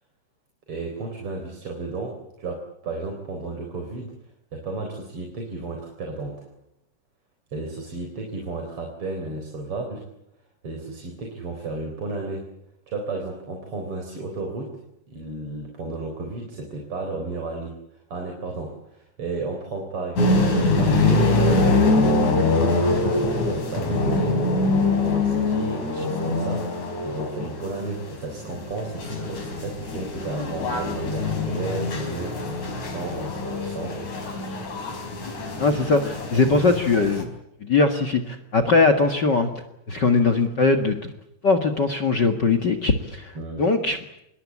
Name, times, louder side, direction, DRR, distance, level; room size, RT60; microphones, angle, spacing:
voice 1, 0.7-4.1 4.5-6.5 7.5-10.1 10.6-12.5 12.9-14.7 15.1-17.8 18.1-22.1 22.6-34.0 43.3-43.7, right 3 dB, 45° right, 2 dB, 4.9 m, -33 dB
sound 1, 20.2-37.2, left 2 dB, 70° left, 5.8 m, -24 dB
voice 2, 35.6-37.3 37.6-39.5 39.9-41.1 41.4-44.0, left 3 dB, 40° left, 6 dB, 2.0 m, -20 dB
26.5 x 22.0 x 8.5 m, 0.81 s
omnidirectional pair, 3.4 m